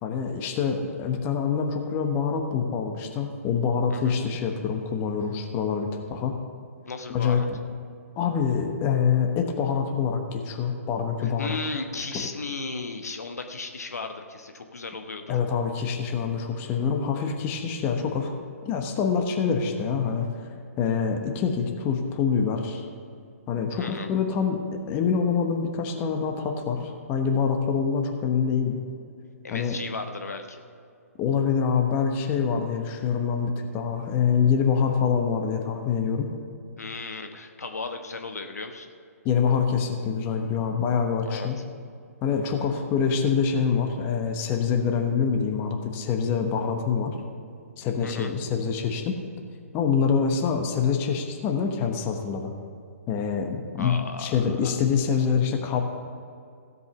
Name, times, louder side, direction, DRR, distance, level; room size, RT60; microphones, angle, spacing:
voice 1, 0.0-6.4 7.1-7.6 8.2-11.6 12.1-12.3 15.3-18.3 18.6-20.5 20.8-22.9 23.5-28.8 29.5-29.8 31.2-36.3 39.2-41.6 42.2-47.1 47.8-49.2 49.7-52.5 53.1-55.8, left 6 dB, 25° left, 4 dB, 1.1 m, -25 dB
voice 2, 6.9-7.5 11.2-15.3 23.7-24.1 29.4-30.6 36.8-38.9 41.2-41.5 48.0-48.3 53.8-54.8, left 3 dB, 80° left, 5 dB, 1.1 m, -35 dB
16.0 x 5.5 x 6.9 m, 2.4 s
figure-of-eight pair, 135°, 8 cm